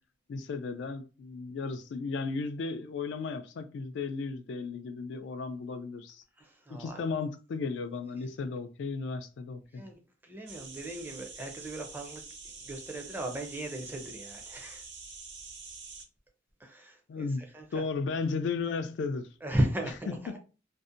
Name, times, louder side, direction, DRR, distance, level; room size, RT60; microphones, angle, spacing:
voice 1, 0.3-6.2 6.7-9.8 17.1-17.4 17.7-19.3 20.1-20.4, left 4 dB, 65° left, 0.3 m, -35 dB
voice 2, 6.4-7.0 9.7-9.9 10.2-12.2 12.6-14.8 16.6-17.3 17.5-17.8 19.4-20.4, right 1 dB, 10° right, 0.4 m, -35 dB
sound 1, 10.5-16.0, right 4 dB, 60° right, 0.5 m, -46 dB
2.6 x 2.1 x 2.5 m
head